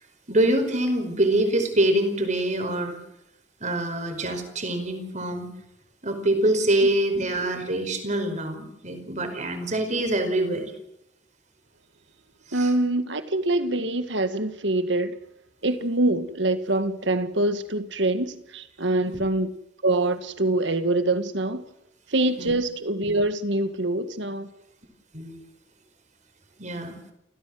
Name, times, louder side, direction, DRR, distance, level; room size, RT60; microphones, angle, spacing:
voice 1, 0.3-3.0 3.6-5.5 6.0-10.7 12.5-12.7 19.1-19.2 22.4-22.5 25.1-25.4 26.6-27.0, right 1 dB, 40° right, 5.0 m, -25 dB
voice 2, 12.5-15.1 15.6-19.5 19.8-21.7 22.1-24.5, right 2 dB, 70° right, 1.9 m, -25 dB
29.0 x 16.0 x 7.9 m
head